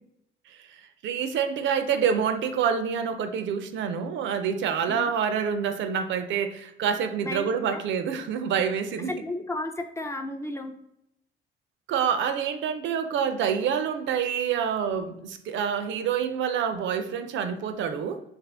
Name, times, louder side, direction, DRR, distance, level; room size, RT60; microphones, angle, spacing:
voice 1, 1.0-9.1 11.9-18.2, right 7 dB, 70° right, 9 dB, 0.4 m, -27 dB
voice 2, 7.2-7.8 9.2-10.8, left 2 dB, 15° left, 5 dB, 0.3 m, -34 dB
2.8 x 2.5 x 3.3 m, 0.77 s
cardioid pair, 90°, 20 cm